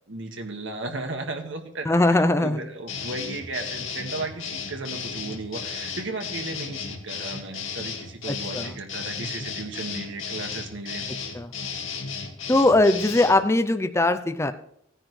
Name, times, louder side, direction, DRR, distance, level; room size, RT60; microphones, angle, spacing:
voice 1, 0.1-11.1 11.6-11.7, right 2 dB, 65° right, 4 dB, 1.8 m, -35 dB
voice 2, 1.9-2.6 8.5-8.7 11.3-11.5 12.5-14.5, left 2 dB, 15° left, 8 dB, 0.5 m, -20 dB
sound 1, 2.9-13.4, left 6 dB, 70° left, 2.0 m, -34 dB
16.0 x 10.0 x 3.2 m, 0.72 s
head